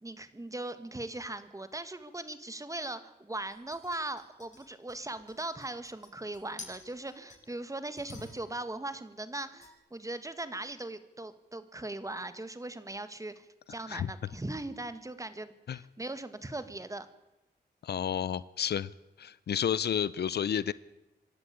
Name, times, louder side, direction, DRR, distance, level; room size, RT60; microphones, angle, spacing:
voice 1, 0.0-17.1, right 2 dB, 20° right, 11 dB, 1.8 m, -39 dB
sound 1, 3.5-7.6 8.0-8.7 9.6-9.7, left 3 dB, 45° left, 8.0 m, -51 dB
voice 2, 17.8-18.9 19.2-20.7, left 9 dB, 75° left, 19 dB, 0.6 m, -31 dB
26.0 x 11.5 x 8.7 m, 0.97 s
cardioid pair, 80°, 17 cm